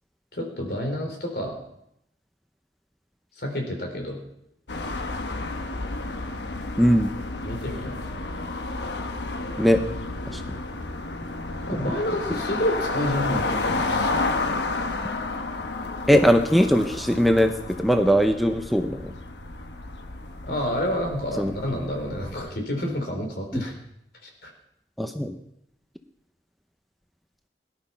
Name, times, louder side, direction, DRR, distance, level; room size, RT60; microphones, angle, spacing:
voice 1, 0.3-1.5 3.4-4.2 7.5-8.0 11.7-14.4 20.5-23.7 24.2-24.5, equal, 65° left, 2 dB, 3.7 m, -29 dB
sound 1, 4.7-22.5, left 3 dB, 85° left, 1.2 m, -31 dB
voice 2, 6.8-7.1 9.6-9.8 10.3-10.6 16.1-17.5 17.8-19.1 21.4-21.5 23.5-23.6 25.0-25.3, equal, ahead, 6 dB, 0.6 m, -20 dB
18.5 x 11.5 x 5.7 m, 0.78 s
head